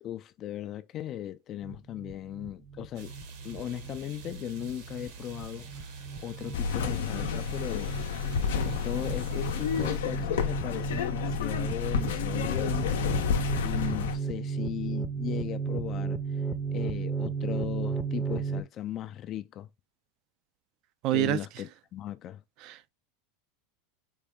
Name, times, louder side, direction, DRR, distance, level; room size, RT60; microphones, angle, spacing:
voice 1, 0.0-3.1 3.4-5.8 6.2-7.9 8.6-12.9 13.6-16.2 16.7-19.7 21.1-22.4, left 11 dB, 40° left, 0.3 m, -37 dB
sound 1, 1.6-18.6, right 5 dB, 5° right, 0.6 m, -35 dB
sound 2, 2.9-10.0, right 4 dB, 70° right, 1.1 m, -45 dB
sound 3, 6.5-14.2, left 7 dB, 85° left, 0.6 m, -30 dB
voice 2, 21.0-21.4 22.6-22.9, right 15 dB, 55° right, 0.4 m, -27 dB
4.6 x 2.1 x 3.5 m
supercardioid pair, 115°, 0 cm